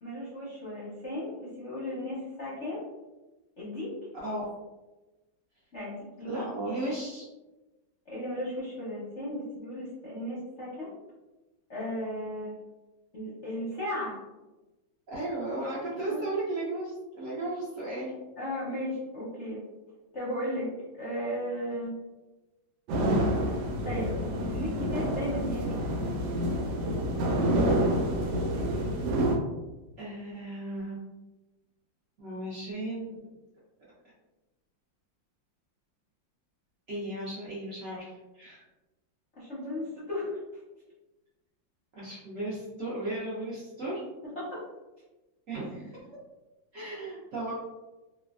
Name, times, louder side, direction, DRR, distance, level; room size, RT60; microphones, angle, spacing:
voice 1, 0.0-2.8 3.6-3.9 5.7-6.4 8.1-10.9 11.7-12.5 13.1-14.2 16.1-16.2 18.4-19.6 20.1-20.7 21.0-21.9 23.5-24.2 24.5-25.8 39.4-40.4 44.2-44.6, left 1 dB, 55° left, -9 dB, 0.8 m, -35 dB
voice 2, 6.2-7.2 15.1-18.1 21.7-21.8 30.0-31.0 32.2-33.2 36.9-38.6 41.9-44.0 45.5-46.1 46.7-47.5, right 2 dB, 60° right, -8 dB, 0.8 m, -35 dB
sound 1, 22.9-29.4, equal, 85° right, 1.3 m, -28 dB
3.1 x 2.2 x 2.4 m, 1.1 s
omnidirectional pair, 2.0 m